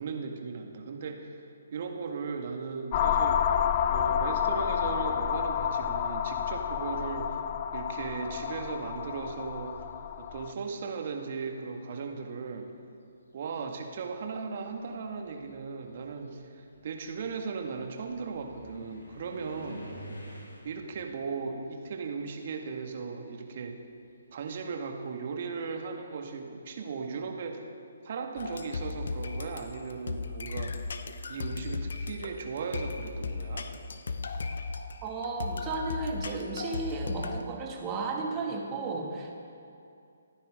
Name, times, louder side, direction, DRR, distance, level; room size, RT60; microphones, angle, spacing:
voice 1, 0.0-3.4 3.9-7.3 7.7-9.8 10.2-12.7 13.3-19.8 20.6-23.8 24.3-27.6 28.0-30.8 31.3-33.7, right 5 dB, 50° right, 3 dB, 1.8 m, -37 dB
sound 1, 2.9-10.5, left 8 dB, 35° left, 0.6 m, -29 dB
sound 2, 11.0-11.6 12.6-12.7 13.3-23.2 23.4-26.1, equal, 80° left, 3.9 m, -50 dB
sound 3, 28.4-37.4, left 4 dB, 65° left, 0.9 m, -36 dB
voice 2, 35.0-39.3, right 3 dB, 25° right, 0 dB, 2.2 m, -34 dB
27.5 x 9.9 x 3.7 m, 2.6 s
figure-of-eight pair, 140°, 0 cm